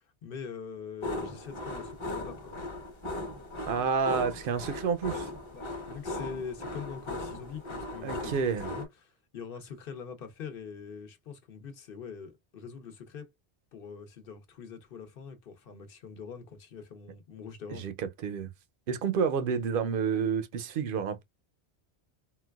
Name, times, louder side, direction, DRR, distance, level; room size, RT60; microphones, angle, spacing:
voice 1, 0.0-2.7 5.5-8.3 8.7-13.3 13.7-17.9, left 6 dB, 60° left, 0.9 m, -43 dB
sound 1, 1.0-8.8, left 2 dB, 30° left, 0.9 m, -38 dB
voice 2, 3.7-5.3 8.0-8.7 17.7-17.9 18.2-18.5 18.9-21.2, right 6 dB, 60° right, 0.7 m, -29 dB
3.9 x 2.2 x 2.2 m
omnidirectional pair, 1.1 m